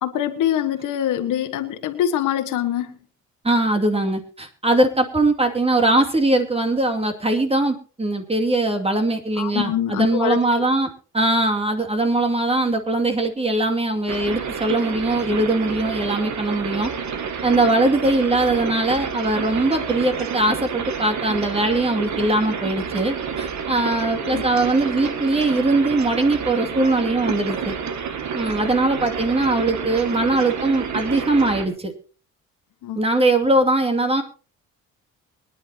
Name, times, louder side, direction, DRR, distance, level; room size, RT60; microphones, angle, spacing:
voice 1, 0.0-3.0 9.4-10.4 24.2-24.4 32.8-33.0, left 11 dB, 85° left, 9 dB, 1.5 m, -24 dB
voice 2, 3.4-16.9 17.4-27.7 28.3-31.9 33.0-34.2, right 2 dB, 20° right, 5 dB, 2.4 m, -21 dB
sound 1, 14.1-31.7, right 6 dB, 70° right, 2.2 m, -29 dB
23.5 x 10.0 x 2.9 m, 0.37 s
cardioid pair, 90°, 30 cm